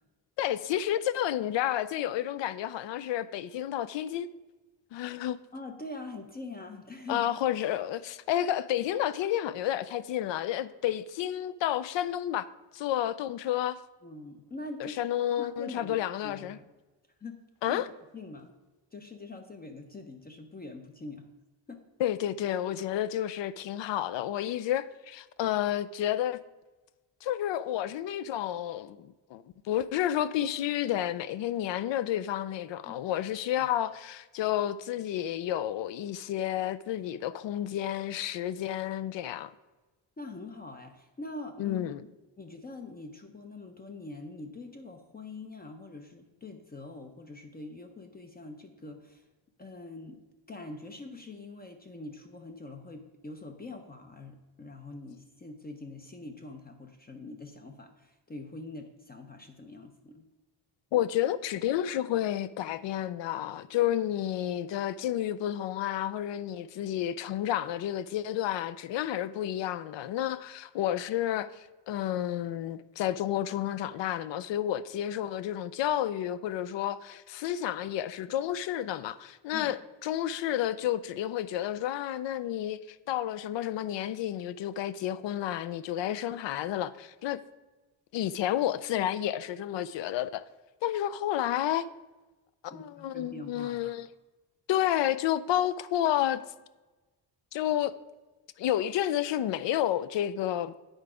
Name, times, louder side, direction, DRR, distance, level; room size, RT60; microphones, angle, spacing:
voice 1, 0.4-4.3 4.9-5.4 7.1-12.5 12.7-13.8 14.8-16.6 17.6-17.9 22.0-26.4 27.2-39.5 41.6-42.0 60.9-87.4 88.1-90.4 90.8-91.9 92.6-94.1 94.7-96.4 97.5-97.9 98.6-100.7, left 11 dB, 80° left, 0.5 m, -30 dB
voice 2, 5.5-7.2 14.0-15.0 15.4-16.0 16.2-16.7 17.2-17.4 17.7-17.8 18.1-18.5 18.9-21.3 21.7-21.8 32.8-33.0 33.6-33.7 40.2-41.8 42.4-49.2 49.6-50.2 50.5-60.3 79.5-79.7 92.7-93.9, left 2 dB, 20° left, 0.5 m, -44 dB
8.9 x 4.6 x 4.8 m
wide cardioid pair, 155°, 44 cm